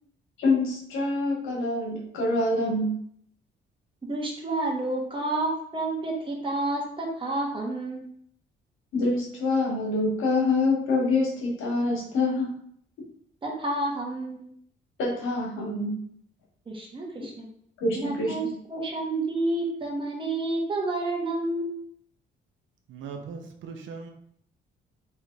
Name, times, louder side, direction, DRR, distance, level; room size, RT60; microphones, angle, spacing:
voice 1, 0.4-2.9 8.9-12.5 15.0-15.9 17.8-18.3, left 2 dB, 90° left, -4 dB, 1.6 m, -25 dB
voice 2, 4.1-8.1 13.4-14.5 16.7-17.5 17.9-21.9, right 2 dB, 25° right, -1 dB, 1.2 m, -30 dB
voice 3, 22.9-24.1, right 5 dB, 75° right, 4 dB, 0.7 m, -39 dB
3.3 x 3.0 x 3.9 m, 0.66 s
cardioid pair, 90°, 20 cm